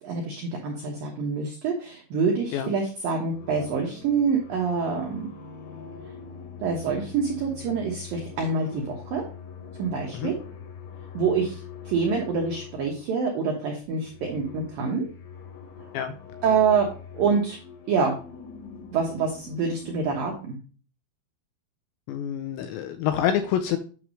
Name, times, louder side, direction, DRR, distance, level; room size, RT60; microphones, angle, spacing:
voice 1, 0.0-5.3 6.6-9.2 9.8-10.4 11.1-11.6 11.9-15.1 16.4-16.9 17.1-17.6 17.9-18.1 18.9-20.6, right 5 dB, 85° right, 0 dB, 2.0 m, -26 dB
sound 1, 2.9-3.0 3.3-13.3 13.8-20.4, left 6 dB, 65° left, 2.9 m, -43 dB
voice 2, 22.1-23.8, left 10 dB, 85° left, 7 dB, 2.6 m, -26 dB
9.3 x 3.2 x 6.2 m, 0.38 s
omnidirectional pair, 5.8 m